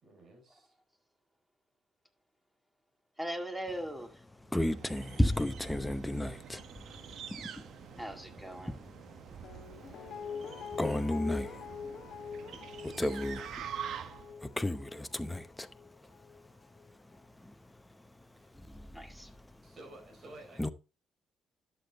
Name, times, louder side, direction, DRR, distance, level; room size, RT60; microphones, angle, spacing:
voice 1, 0.0-0.7 18.3-18.6 19.6-20.7, right 2 dB, 45° right, 4.0 m, -52 dB
voice 2, 3.2-4.1 8.0-8.7 18.9-19.3, right 1 dB, 10° right, 2.0 m, -39 dB
voice 3, 4.5-7.7 8.6-8.9 9.9-10.0 10.7-11.8 12.8-13.7 14.4-15.7 17.4-17.5 18.5-19.1 20.6-20.7, left 1 dB, 10° left, 0.7 m, -33 dB
sound 1, 4.5-14.4, right 9 dB, 75° right, 0.9 m, -46 dB
Guitar, 9.4-16.5 16.8-16.9, left 6 dB, 70° left, 0.9 m, -44 dB
11.5 x 7.0 x 3.4 m
cardioid pair, 90°, 0 cm